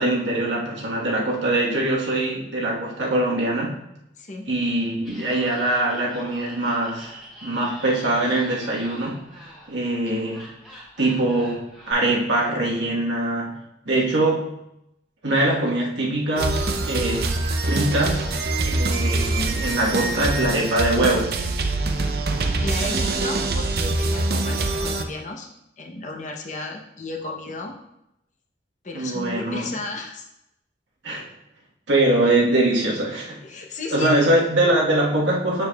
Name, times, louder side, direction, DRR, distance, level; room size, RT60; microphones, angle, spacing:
voice 1, 0.0-3.8 4.5-10.5 11.0-13.6 13.8-14.5 15.2-17.3 17.6-18.3 18.6-21.3 28.9-29.7 31.0-31.3 31.9-33.4 33.9-35.7, right 1 dB, 85° right, -3 dB, 1.4 m, -23 dB
voice 2, 4.2-4.5 22.6-25.5 25.8-27.8 28.8-30.3 33.4-34.3, left 2 dB, 40° left, 1 dB, 0.8 m, -34 dB
Laughter, 5.0-11.9, equal, 5° left, 1.9 m, -44 dB
sound 1, 16.4-25.0, right 2 dB, 55° right, 0.6 m, -24 dB
6.8 x 6.6 x 2.3 m, 0.84 s
head